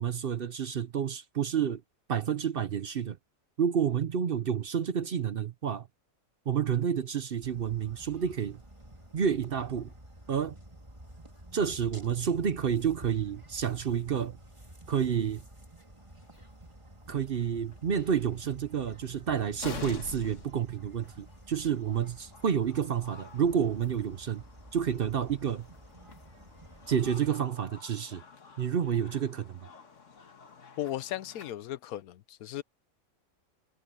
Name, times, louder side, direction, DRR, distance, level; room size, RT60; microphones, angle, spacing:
voice 1, 0.0-1.8 2.1-3.2 3.6-5.9 6.5-8.6 9.1-9.9 10.3-10.6 11.5-14.4 14.9-15.4 17.1-24.4 24.7-25.7 26.9-28.2 28.6-29.6, right 8 dB, 50° right, 0.8 m, -29 dB
sound 1, 7.4-27.3, right 1 dB, 20° right, 2.8 m, -51 dB
sound 2, 16.2-16.4 17.3-17.4 17.7-17.8 19.0-19.1 19.5-31.5, left 5 dB, 60° left, 1.9 m, -48 dB
voice 2, 30.8-32.6, left 13 dB, 90° left, 1.2 m, -36 dB
omnidirectional pair, 1.5 m